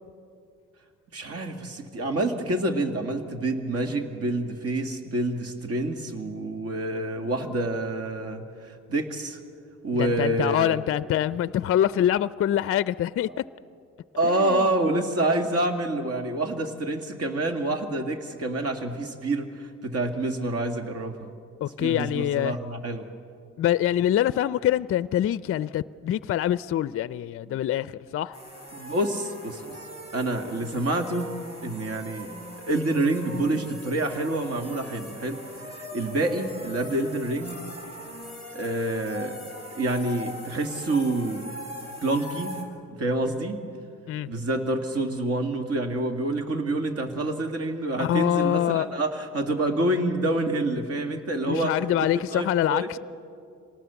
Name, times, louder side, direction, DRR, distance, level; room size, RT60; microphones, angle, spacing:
voice 1, 1.1-9.4 9.8-10.8 13.3-13.4 14.1-21.3 21.8-23.1 27.5-27.6 28.7-29.8 30.1-31.3 31.6-32.3 32.7-35.4 35.7-37.6 38.5-39.4 39.7-41.5 42.0-42.5 42.9-43.6 44.3-51.7 52.3-53.0, right 2 dB, 50° right, 5 dB, 2.3 m, -27 dB
voice 2, 10.0-13.3 14.2-14.7 21.6-22.6 23.6-28.4 44.1-44.3 48.0-48.9 51.5-53.0, left 11 dB, 50° left, 17 dB, 0.4 m, -25 dB
sound 1, 28.3-42.6, left 1 dB, 20° right, 4.3 m, -41 dB
25.5 x 19.0 x 7.0 m, 2.4 s
cardioid pair, 90°, 30 cm